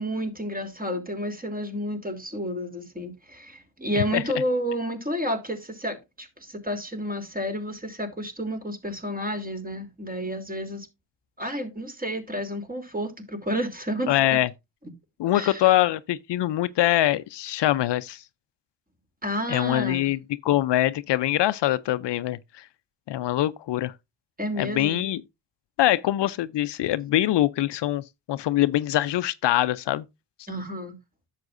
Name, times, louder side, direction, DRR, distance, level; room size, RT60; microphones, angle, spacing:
voice 1, 0.0-10.9 11.4-14.4 15.3-15.6 19.2-20.1 24.4-25.1 30.5-31.0, equal, 20° right, 2.9 m, -31 dB
voice 2, 14.1-14.5 15.2-18.2 19.5-22.7 23.1-23.9 24.6-25.2 25.8-30.0, left 14 dB, 70° left, 0.6 m, -24 dB
10.5 x 7.5 x 2.6 m
supercardioid pair, 55°, 44 cm